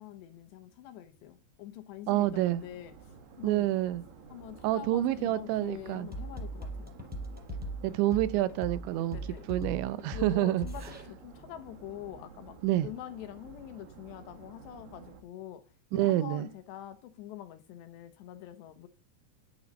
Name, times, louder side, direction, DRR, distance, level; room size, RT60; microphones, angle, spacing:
voice 1, 0.0-3.7 4.3-7.0 9.1-9.5 10.1-15.6 15.9-18.9, left 12 dB, 75° left, 3.1 m, -45 dB
sound 1, 2.1-15.2, right 5 dB, 65° right, 3.9 m, -52 dB
voice 2, 2.1-2.6 3.4-4.0 4.6-6.1 7.8-9.2 9.5-10.7 12.6-12.9 15.9-16.5, right 14 dB, 80° right, 2.9 m, -28 dB
sound 2, 6.1-11.0, right 1 dB, ahead, 5.2 m, -39 dB
12.5 x 10.5 x 5.2 m
omnidirectional pair, 5.5 m